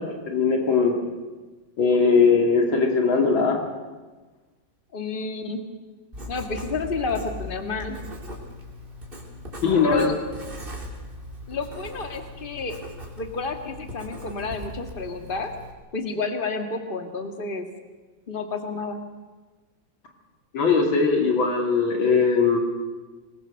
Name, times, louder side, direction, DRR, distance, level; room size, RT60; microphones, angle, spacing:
voice 1, 0.3-0.9 1.8-3.6 9.6-10.1 20.5-22.6, left 5 dB, 90° left, 2 dB, 3.4 m, -20 dB
voice 2, 4.9-5.6 6.3-8.0 9.8-10.2 11.5-12.8 13.2-15.5 15.9-17.7 18.3-19.0, left 4 dB, 30° left, 6 dB, 2.0 m, -30 dB
Writing, 6.1-15.7, left 1 dB, 25° right, 3.8 m, -39 dB
25.0 x 21.0 x 6.6 m, 1.3 s
omnidirectional pair, 2.1 m